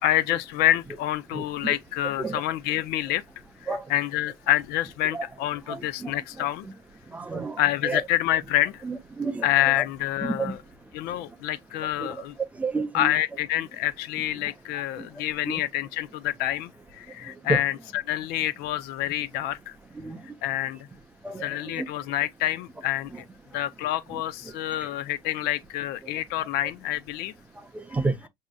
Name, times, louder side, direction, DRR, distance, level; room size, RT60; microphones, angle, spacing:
voice 1, 0.0-3.2 3.6-6.7 7.6-8.8 9.4-10.6 10.9-12.4 12.9-19.8 20.4-20.9 21.4-23.2 23.5-27.3, left 13 dB, 65° left, 0.5 m, -27 dB
voice 2, 1.3-1.7 2.2-2.4 3.7-3.8 5.1-5.3 5.7-6.1 6.4-6.5 7.1-7.6 7.8-8.0 8.8-9.5 9.8-9.9 10.4-10.5 12.0-12.1 12.6-13.1 15.5-15.6 17.5-17.6 20.0-20.2 21.2-21.5 21.8-21.9 27.9-28.1, right 3 dB, 10° right, 0.5 m, -30 dB
6.1 x 2.8 x 2.2 m
cardioid pair, 155°, 18 cm